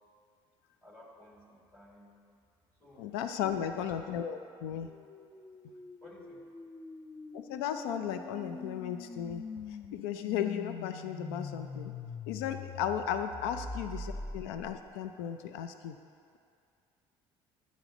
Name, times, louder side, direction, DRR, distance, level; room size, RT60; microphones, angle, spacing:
voice 1, 0.8-2.2 2.7-3.1 3.5-3.9 6.0-6.5 14.1-14.2, left 1 dB, 10° left, -2 dB, 1.4 m, -55 dB
voice 2, 3.0-4.9 7.3-9.5 9.9-11.9 12.3-16.0, left 9 dB, 90° left, 8 dB, 0.4 m, -35 dB
sound 1, 4.8-14.9, left 4 dB, 30° left, 0.6 m, -44 dB
8.2 x 4.0 x 4.9 m, 2.3 s
supercardioid pair, 85°, 12 cm